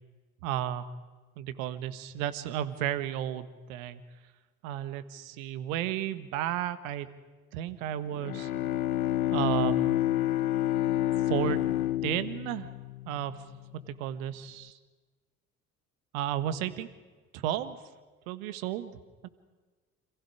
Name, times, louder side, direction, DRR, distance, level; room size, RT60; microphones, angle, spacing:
voice 1, 0.4-0.9 1.4-4.0 4.6-7.1 7.5-8.5 9.3-10.0 11.3-11.7 12.0-12.7 13.0-13.4 13.7-14.8 16.1-16.9 17.3-17.8 18.3-18.9 19.2-19.3, right 11 dB, 70° right, 13 dB, 1.6 m, -33 dB
Bowed string instrument, 8.1-13.7, left 13 dB, 85° left, 0.7 m, -29 dB
28.5 x 27.5 x 4.9 m, 1.3 s
figure-of-eight pair, 50°, 43 cm